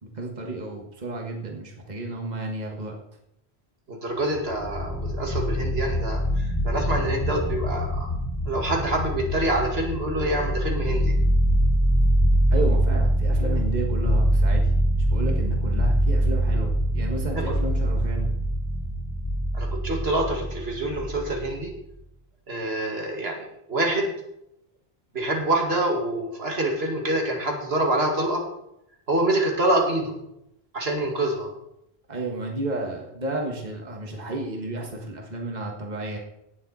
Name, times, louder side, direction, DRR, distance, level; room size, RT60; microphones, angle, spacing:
voice 1, 0.0-3.0 12.5-14.6 14.9-18.3 32.1-36.2, right 2 dB, 45° right, 1 dB, 1.7 m, -32 dB
voice 2, 3.9-8.1 8.5-11.1 17.3-17.6 19.5-21.7 22.5-24.1 25.1-28.4 29.1-30.2 30.7-31.5, right 1 dB, 75° right, 1 dB, 2.3 m, -26 dB
sound 1, 4.3-21.7, right 1 dB, 45° left, 3.2 m, -24 dB
17.5 x 7.4 x 4.2 m, 0.81 s
omnidirectional pair, 1.1 m